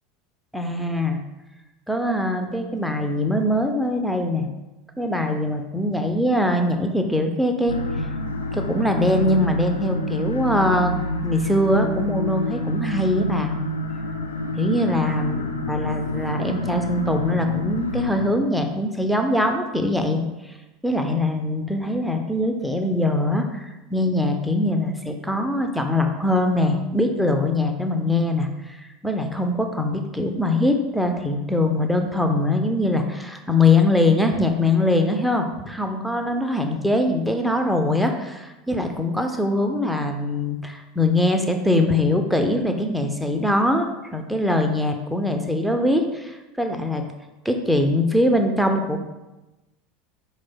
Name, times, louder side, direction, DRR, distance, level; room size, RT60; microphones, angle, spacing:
voice 1, 0.5-1.2 1.9-4.5 5.0-7.8 8.5-10.9 11.2-13.5 14.6-20.2 20.8-47.1 47.4-49.0, left 1 dB, ahead, 4 dB, 0.4 m, -22 dB
sound 1, 7.7-18.3, left 1 dB, 80° left, 0.3 m, -28 dB
4.4 x 2.1 x 4.3 m, 1.0 s
figure-of-eight pair, 75°, 0 cm